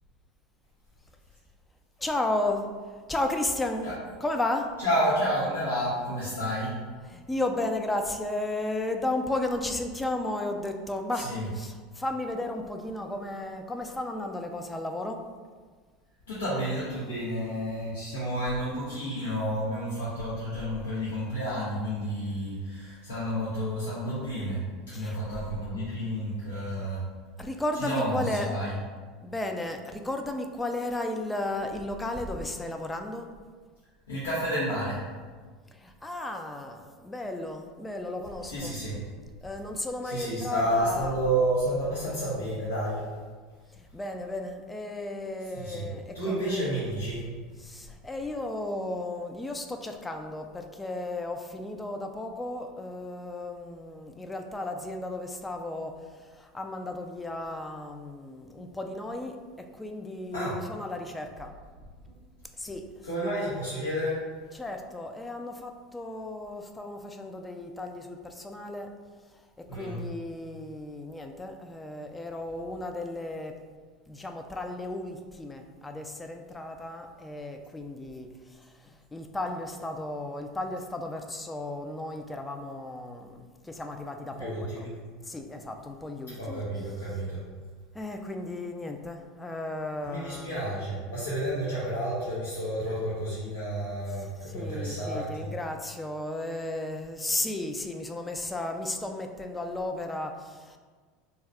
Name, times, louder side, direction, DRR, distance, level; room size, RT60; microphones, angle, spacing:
voice 1, 2.0-3.9 4.2-4.7 7.0-15.2 24.9-25.2 27.4-28.5 29.2-33.3 35.7-38.8 39.4-41.3 43.7-46.7 47.6-61.5 62.6-63.2 64.5-68.9 69.6-73.5 74.1-84.9 85.2-86.8 87.9-90.6 94.1-100.8, left 2 dB, 15° left, 4 dB, 0.3 m, -34 dB
voice 2, 4.8-6.7 11.2-11.5 16.3-24.6 24.9-27.0 27.8-28.7 34.1-35.0 38.5-39.0 40.0-43.1 45.5-45.9 46.1-47.2 60.3-60.6 63.0-64.2 69.7-70.0 84.4-84.9 86.3-87.4 90.0-95.5, equal, 85° left, -10 dB, 0.7 m, -30 dB
2.6 x 2.3 x 3.3 m, 1.5 s
hypercardioid pair, 85°, 0 cm